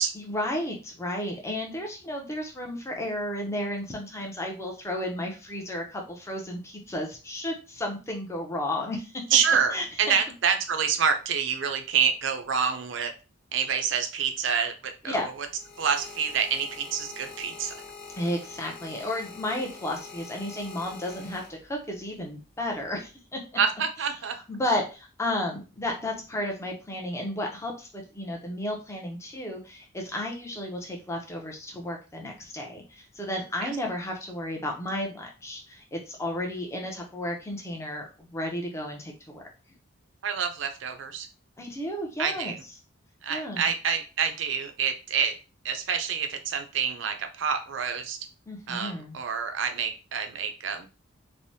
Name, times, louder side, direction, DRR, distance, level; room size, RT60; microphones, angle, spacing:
voice 1, 0.1-9.2 9.7-10.2 15.0-15.3 18.2-23.4 24.5-39.4 41.6-42.6 43.3-43.7 48.5-49.2, left 1 dB, 15° left, 1 dB, 0.5 m, -33 dB
voice 2, 9.3-13.1 13.5-15.2 15.8-17.7 23.6-24.4 33.6-33.7 40.2-41.3 42.2-42.6 43.2-45.3 45.6-48.2 48.7-50.9, right 7 dB, 65° right, 7 dB, 0.4 m, -27 dB
sound 1, 15.1-22.0 22.8-23.1, left 4 dB, 45° left, 0.7 m, -45 dB
3.2 x 2.0 x 2.6 m, 0.32 s
head